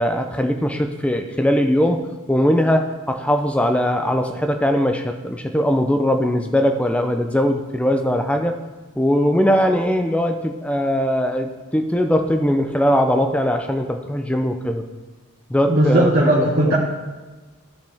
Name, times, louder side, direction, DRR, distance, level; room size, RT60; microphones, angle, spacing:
voice 1, 0.0-8.6 9.0-14.9 15.5-16.8, equal, 5° left, 6 dB, 0.5 m, -20 dB
voice 2, 15.7-16.8, right 1 dB, 45° right, -6 dB, 1.4 m, -17 dB
13.0 x 4.9 x 3.5 m, 1.2 s
head